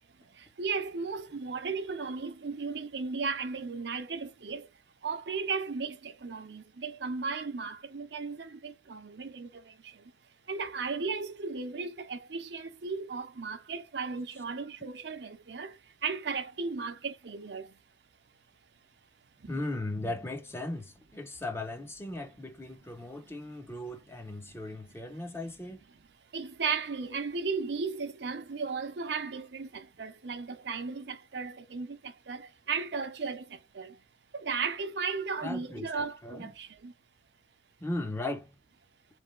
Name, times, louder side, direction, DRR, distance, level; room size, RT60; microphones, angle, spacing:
voice 1, 0.6-4.7 5.0-9.5 10.5-15.7 16.0-17.7 19.4-19.6 26.3-33.5 33.7-33.9 34.3-36.9, right 5 dB, 65° right, 0.6 m, -35 dB
voice 2, 19.5-25.8 35.4-36.5 37.8-38.5, left 2 dB, 15° left, 0.7 m, -37 dB
3.8 x 3.3 x 3.7 m
head